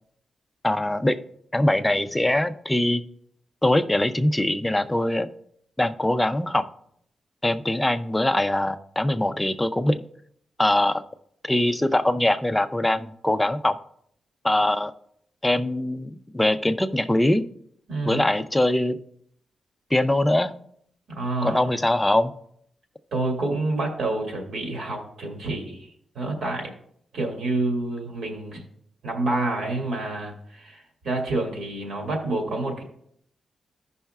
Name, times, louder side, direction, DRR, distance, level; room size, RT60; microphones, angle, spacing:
voice 1, 0.6-1.2 1.5-3.0 3.6-5.3 5.8-6.7 7.4-10.0 10.6-11.0 11.4-13.8 14.4-14.9 15.4-17.4 18.0-19.0 19.9-20.5 21.4-22.3, left 1 dB, 5° left, 9 dB, 0.4 m, -22 dB
voice 2, 17.9-18.2 21.1-21.7 23.1-25.9 26.1-26.7 27.1-28.6 29.0-32.8, right 2 dB, 70° right, 0 dB, 2.0 m, -28 dB
15.5 x 5.5 x 2.3 m, 0.69 s
wide cardioid pair, 170°, 0 cm